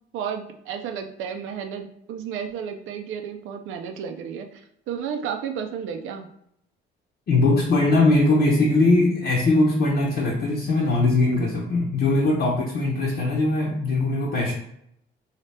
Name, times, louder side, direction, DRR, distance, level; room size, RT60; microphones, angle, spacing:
voice 1, 0.1-6.3, right 7 dB, 85° right, 5 dB, 0.5 m, -32 dB
voice 2, 7.3-14.5, left 2 dB, 55° left, -5 dB, 0.8 m, -20 dB
2.8 x 2.8 x 3.3 m, 0.74 s
cardioid pair, 90°, 20 cm